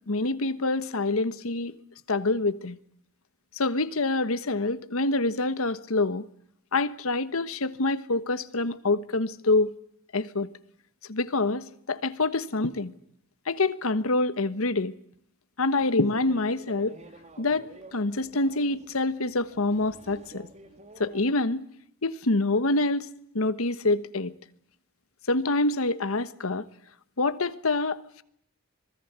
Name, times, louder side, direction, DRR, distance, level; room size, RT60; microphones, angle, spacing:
voice 1, 0.1-1.7 2.1-2.8 3.6-6.2 6.7-9.7 10.1-10.5 11.1-12.9 13.5-14.9 15.6-17.0 17.4-20.5 21.0-21.7 22.0-23.1 23.3-24.3 25.3-26.6 27.2-28.2, left 2 dB, 75° left, 1.2 m, -26 dB
sound 1, 15.7-21.2, right 2 dB, 30° right, 2.4 m, -50 dB
26.0 x 20.5 x 8.1 m
head